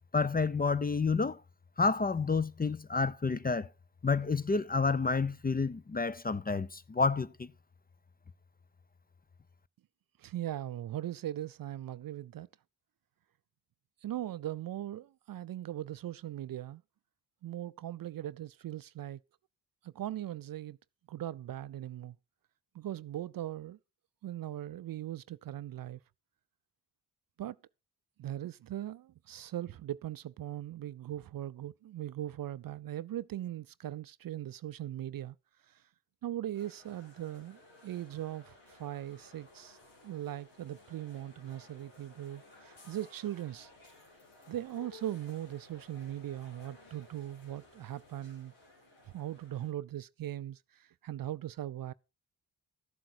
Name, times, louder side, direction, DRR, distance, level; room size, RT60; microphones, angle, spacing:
voice 1, 0.1-1.4 1.8-3.7 4.0-7.5, left 4 dB, 20° left, 0.6 m, -29 dB
voice 2, 10.2-12.5 14.0-16.8 17.4-19.2 19.8-20.8 21.1-22.2 22.7-23.8 24.2-26.0 27.4-27.6 28.2-35.4 35.7-35.8 36.2-39.8 40.0-43.7 44.5-48.5 49.1-51.9, right 12 dB, 50° right, 0.5 m, -39 dB
sound 1, 36.5-49.7, left 2 dB, 80° left, 4.6 m, -58 dB
13.5 x 7.6 x 4.3 m
supercardioid pair, 45°, 45 cm